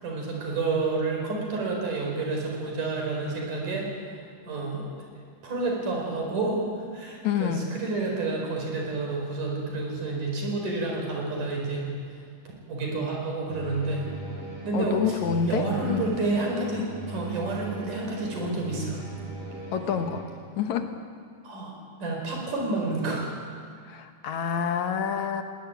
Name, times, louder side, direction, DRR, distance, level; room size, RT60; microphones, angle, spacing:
voice 1, 0.0-3.9 4.5-4.9 5.4-6.6 6.9-11.9 12.7-14.1 14.6-15.2 15.5-19.0 21.4-21.7 22.0-23.3, right 3 dB, 85° right, 0 dB, 6.3 m, -29 dB
voice 2, 7.2-7.7 14.7-16.1 19.7-20.3 20.6-20.9 23.9-25.4, left 7 dB, 70° left, 7 dB, 2.5 m, -27 dB
sound 1, 13.5-20.2, right 2 dB, 55° right, 5.8 m, -39 dB
19.5 x 19.0 x 9.3 m, 2.1 s
omnidirectional pair, 3.6 m